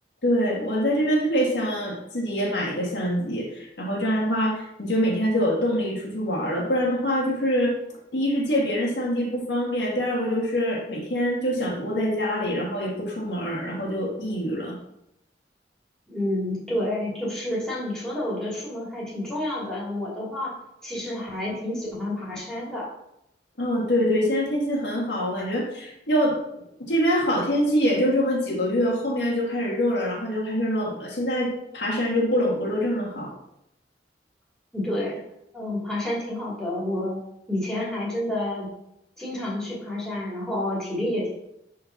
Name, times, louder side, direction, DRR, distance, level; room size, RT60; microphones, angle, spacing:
voice 1, 0.2-7.7 8.1-14.8 23.6-26.4 26.9-33.3, equal, 85° left, -2 dB, 1.7 m, -25 dB
voice 2, 16.1-20.5 20.8-22.9 34.7-35.2 35.5-37.2 37.5-38.7 39.2-41.3, left 1 dB, 5° left, -8 dB, 2.5 m, -29 dB
4.9 x 4.4 x 5.8 m, 0.82 s
head